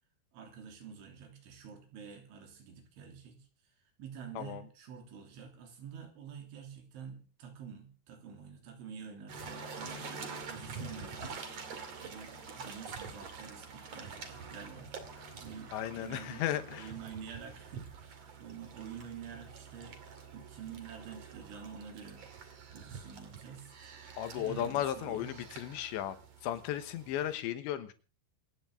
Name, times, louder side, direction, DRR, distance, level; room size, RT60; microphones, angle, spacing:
voice 1, 0.3-3.5 4.0-20.0 20.3-23.7 24.3-25.3, right 7 dB, 75° right, 3 dB, 5.5 m, -48 dB
sound 1, 9.3-27.3, right 5 dB, 45° right, 2.5 m, -47 dB
voice 2, 15.7-16.9 24.2-26.2 26.4-27.9, left 11 dB, 75° left, 10 dB, 3.3 m, -35 dB
26.5 x 9.7 x 3.7 m, 0.37 s
omnidirectional pair, 5.6 m